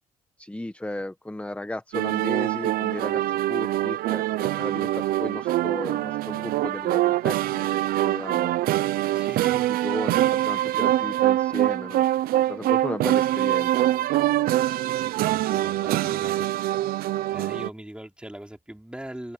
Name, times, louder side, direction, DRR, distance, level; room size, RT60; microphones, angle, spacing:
voice 1, 0.4-8.5 9.1-9.3 9.7-12.1 12.5-13.9, left 1 dB, 10° left, 1.5 m, -35 dB
Chinatown Funeral, 1.9-17.7, right 14 dB, 85° right, 0.8 m, -24 dB
voice 2, 9.1-9.7 15.2-16.5 17.3-19.3, right 1 dB, 5° right, 4.3 m, -40 dB
supercardioid pair, 60°, 15 cm